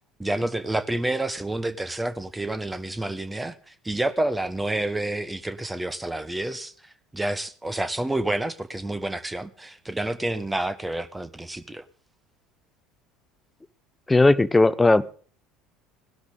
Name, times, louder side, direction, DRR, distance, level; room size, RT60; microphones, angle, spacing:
voice 1, 0.2-11.8, right 1 dB, 10° right, 1.2 m, -29 dB
voice 2, 14.1-15.1, left 2 dB, 15° left, 0.8 m, -17 dB
18.0 x 12.0 x 3.9 m
figure-of-eight pair, 65°, 0 cm